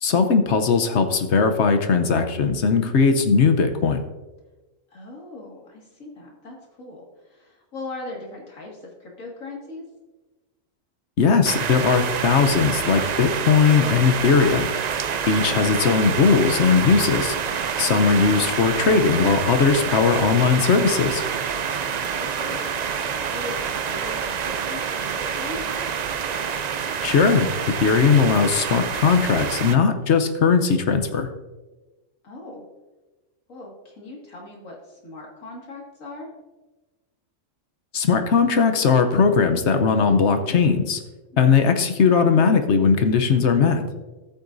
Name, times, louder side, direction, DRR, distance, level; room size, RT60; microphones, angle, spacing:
voice 1, 0.0-4.0 11.2-14.7 15.3-17.4 17.8-21.2 27.0-27.5 27.8-31.3 37.9-41.0 41.4-43.8, left 5 dB, 65° left, 7 dB, 1.0 m, -19 dB
voice 2, 4.9-9.8 22.1-22.6 22.9-23.6 23.9-25.6 32.2-32.6 33.5-36.3, left 2 dB, 85° left, -2 dB, 2.5 m, -39 dB
sound 1, 11.4-29.8, right 7 dB, 65° right, 0.4 m, -27 dB
14.0 x 8.4 x 2.6 m, 1.2 s
omnidirectional pair, 1.3 m